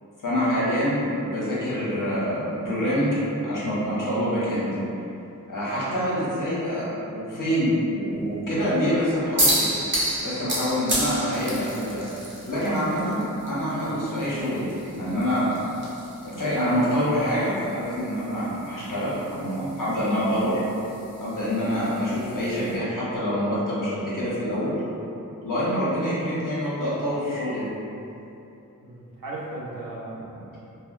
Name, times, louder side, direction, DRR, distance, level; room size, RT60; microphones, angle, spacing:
voice 1, 0.2-3.1 3.4-4.7 5.5-9.7 10.2-12.0 12.4-15.6 16.2-20.6 21.2-24.7 25.4-27.7, equal, 70° left, -9 dB, 1.0 m, -26 dB
sound 1, 9.4-22.7, right 1 dB, 35° right, 0.9 m, -32 dB
voice 2, 28.8-30.6, right 2 dB, 85° right, -5 dB, 0.6 m, -36 dB
3.4 x 2.1 x 2.5 m, 2.8 s
wide cardioid pair, 55°, 33 cm